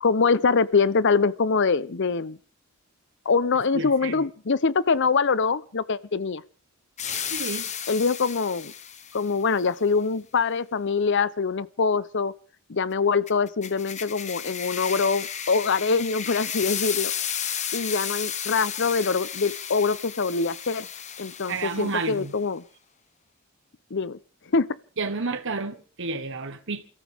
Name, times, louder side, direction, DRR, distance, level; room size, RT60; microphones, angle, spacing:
voice 1, 0.0-2.4 3.3-6.4 7.9-8.7 9.1-12.3 12.7-17.1 17.7-20.9 21.2-22.6 23.9-24.2 24.5-24.7, left 4 dB, 55° left, 0.7 m, -24 dB
voice 2, 3.7-4.2 7.3-7.7 21.5-22.3 25.0-26.8, right 3 dB, 60° right, 1.4 m, -30 dB
sound 1, 7.0-9.3 13.3-22.2, left 8 dB, 35° left, 1.0 m, -33 dB
28.5 x 14.0 x 3.5 m
head